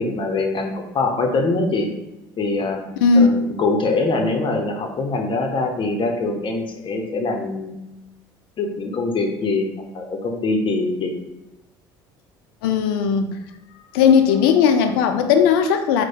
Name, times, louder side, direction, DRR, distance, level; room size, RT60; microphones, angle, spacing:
voice 1, 0.0-1.9 2.4-2.8 3.1-7.8 8.6-9.7 9.9-11.1, left 3 dB, 45° left, 3 dB, 0.8 m, -23 dB
voice 2, 12.6-13.3 13.9-16.1, left 6 dB, 75° left, 8 dB, 0.5 m, -16 dB
4.5 x 2.2 x 4.3 m, 0.94 s
hypercardioid pair, 65°, 12 cm